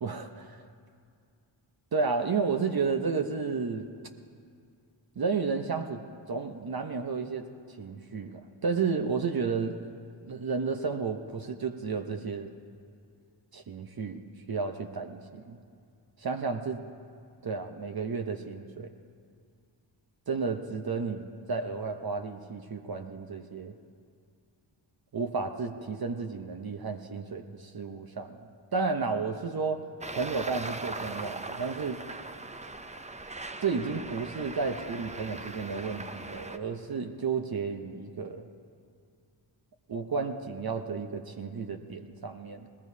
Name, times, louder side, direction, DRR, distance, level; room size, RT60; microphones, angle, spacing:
voice 1, 0.0-0.7 1.9-3.9 5.2-6.0 6.3-7.5 7.8-9.8 10.3-12.5 13.5-14.2 14.5-15.6 16.2-16.8 17.4-18.9 20.3-23.8 25.1-28.4 28.7-29.8 30.1-32.0 33.6-38.5 39.9-42.7, right 5 dB, 45° right, 5 dB, 0.9 m, -32 dB
Traffic noise roadway noise, 30.0-36.6, right 2 dB, 15° right, 0.6 m, -40 dB
19.5 x 19.0 x 2.8 m, 2.3 s
cardioid pair, 50°, 50 cm